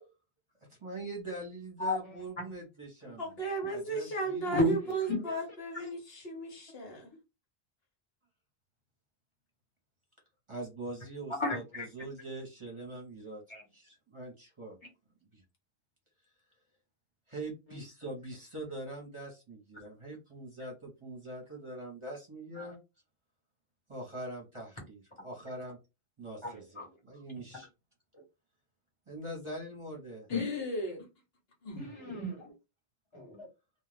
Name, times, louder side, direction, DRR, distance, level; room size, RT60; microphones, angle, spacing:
voice 1, 0.8-3.4 3.7-4.6 10.5-13.4 13.7-14.8 15.3-15.4 17.3-22.8 23.9-25.8 26.2-27.7 29.1-30.3, right 2 dB, 30° right, 1.0 m, -43 dB
voice 2, 3.2-7.1 30.3-31.0 31.6-31.9, right 2 dB, 65° left, 1.1 m, -35 dB
voice 3, 4.5-5.4 11.4-11.8 13.5-13.6 22.6-22.7 26.4-26.8 30.3-30.5 31.8-32.5 33.1-33.5, left 2 dB, 25° left, 1.1 m, -32 dB
2.4 x 2.3 x 3.3 m
omnidirectional pair, 1.1 m